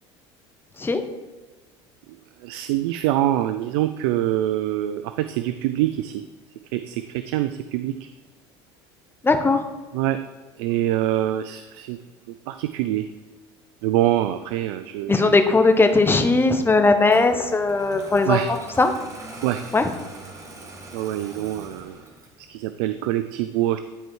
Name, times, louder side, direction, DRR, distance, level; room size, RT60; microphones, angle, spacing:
voice 1, 2.4-6.1 6.7-7.9 9.9-10.2 10.6-12.0 12.5-13.0 13.8-15.3 18.3-18.5 19.4-19.6 20.9-21.9 22.5-23.8, right 13 dB, 80° right, 10 dB, 0.4 m, -24 dB
voice 2, 9.2-9.6 15.1-18.9 19.7-19.9, left 3 dB, 15° left, 7 dB, 1.0 m, -19 dB
Engine starting, 17.0-22.4, right 2 dB, 25° right, 1.7 m, -42 dB
11.0 x 4.6 x 4.7 m, 1.3 s
supercardioid pair, 95°, 13 cm